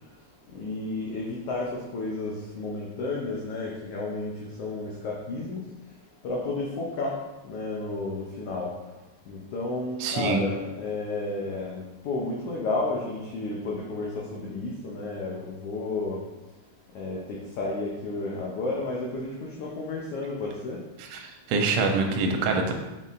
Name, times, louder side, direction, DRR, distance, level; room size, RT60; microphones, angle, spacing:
voice 1, 0.5-4.3 4.6-5.6 6.2-7.2 7.4-8.7 9.3-16.2 16.9-20.8, left 2 dB, 90° left, -3 dB, 1.3 m, -32 dB
voice 2, 10.0-10.4 21.0-22.7, right 4 dB, 80° right, 2 dB, 1.7 m, -25 dB
5.5 x 3.9 x 2.4 m, 1.1 s
omnidirectional pair, 3.4 m